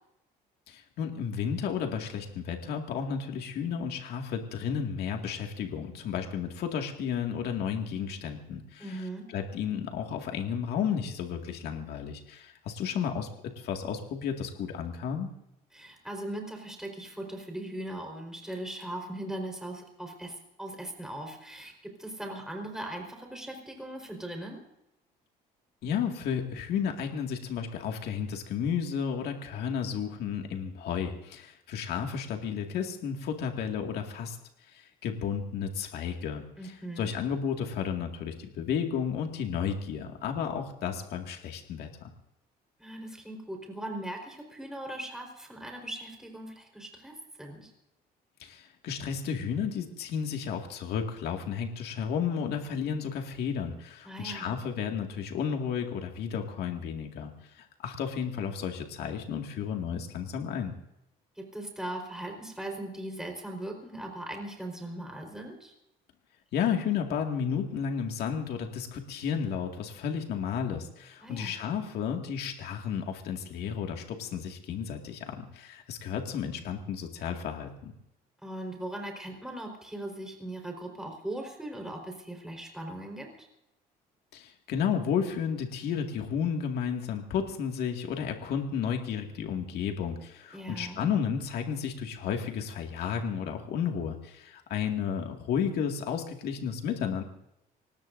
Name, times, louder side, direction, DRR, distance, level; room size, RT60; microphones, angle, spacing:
voice 1, 0.7-9.1 9.3-15.3 25.8-34.4 34.7-42.1 48.4-60.7 66.5-77.9 84.3-97.2, left 7 dB, 75° left, 3 dB, 2.1 m, -32 dB
voice 2, 8.8-9.2 15.7-24.6 36.6-37.1 42.8-47.7 54.0-54.5 61.4-65.7 71.2-71.5 78.4-83.5 90.5-91.0, right 1 dB, 5° right, 1 dB, 4.4 m, -39 dB
25.5 x 19.0 x 2.7 m, 0.85 s
cardioid pair, 110°, 17 cm